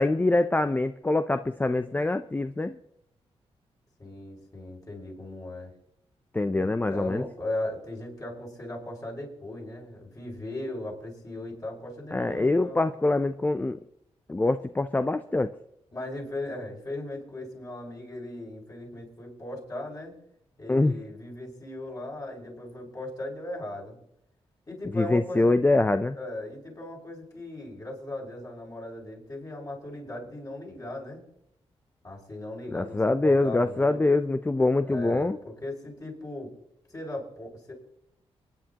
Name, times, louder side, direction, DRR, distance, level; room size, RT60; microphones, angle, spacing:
voice 1, 0.0-2.8 6.3-7.2 12.1-13.8 14.3-15.5 20.7-20.9 24.9-26.2 32.7-35.4, left 2 dB, 15° left, 10 dB, 0.5 m, -24 dB
voice 2, 4.0-5.7 6.5-12.8 15.9-20.1 20.6-24.0 24.7-25.5 26.1-31.2 32.0-34.2 34.9-36.5 36.9-37.7, left 1 dB, 35° left, -3 dB, 5.9 m, -38 dB
30.0 x 10.0 x 2.9 m, 0.78 s
cardioid pair, 95°, 11 cm